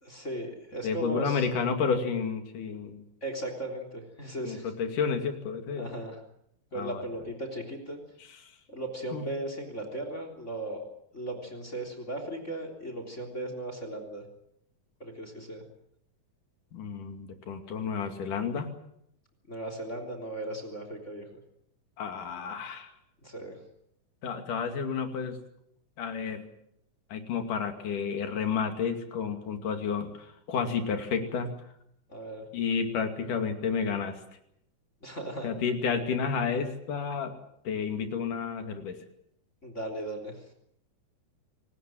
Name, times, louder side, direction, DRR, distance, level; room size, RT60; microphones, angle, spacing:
voice 1, 0.0-1.5 3.2-4.7 5.8-6.2 6.7-8.0 8.7-10.9 11.1-14.2 15.0-15.6 19.5-21.3 23.2-23.6 32.1-32.4 35.0-35.5 39.6-40.3, right 1 dB, 20° left, 6 dB, 3.6 m, -37 dB
voice 2, 0.8-3.0 4.5-5.9 6.8-7.0 8.4-8.5 9.1-9.2 16.7-18.7 22.0-22.9 24.2-25.4 26.0-26.5 27.1-31.5 32.5-34.2 35.4-37.3 37.7-39.0, left 6 dB, 70° left, 6 dB, 4.0 m, -31 dB
26.5 x 19.0 x 7.8 m, 0.74 s
omnidirectional pair, 3.9 m